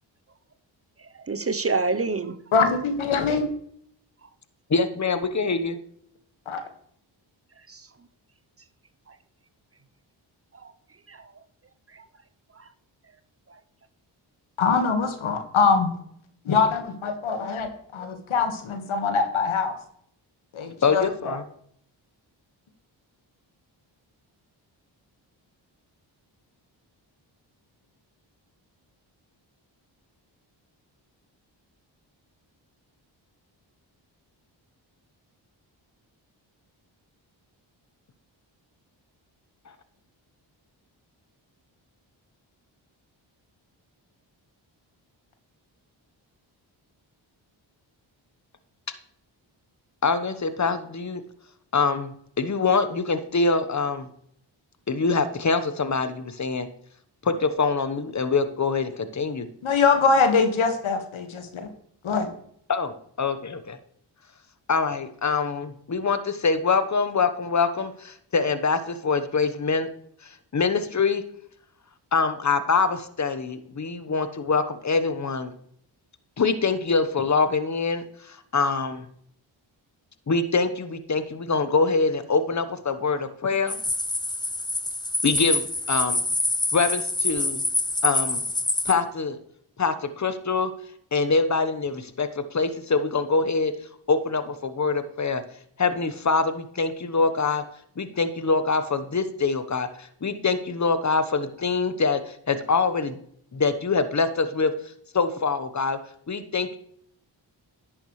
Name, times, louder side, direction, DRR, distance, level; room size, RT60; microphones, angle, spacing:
voice 1, 1.2-2.4 7.7-7.9 9.1-9.2 10.6-10.7 11.1-11.3 11.9-12.0 12.6-12.7 13.5-13.6, right 3 dB, 30° right, 11 dB, 0.8 m, -28 dB
voice 2, 2.5-3.5 6.4-6.6 14.6-15.9 16.4-19.8 20.5-21.4 59.6-61.7 62.0-62.3, left 5 dB, 80° left, 6 dB, 1.7 m, -23 dB
voice 3, 4.7-5.8 20.8-21.4 50.0-51.2 51.7-52.1 52.4-54.1 54.9-56.7 57.2-59.5 62.7-63.8 64.7-69.9 70.5-71.2 72.1-75.5 76.4-79.1 80.3-83.8 85.2-85.6 85.9-86.2 86.7-87.6 88.0-88.4 88.8-89.4 89.8-90.7 91.1-93.7 94.1-95.4 95.8-97.6 98.0-103.2 103.5-104.7 105.1-106.0 106.3-106.8, left 4 dB, 35° left, 11 dB, 1.1 m, -24 dB
sound 1, 83.7-88.9, left 2 dB, 10° left, 0.7 m, -26 dB
11.0 x 8.4 x 3.2 m, 0.66 s
cardioid pair, 50°, 48 cm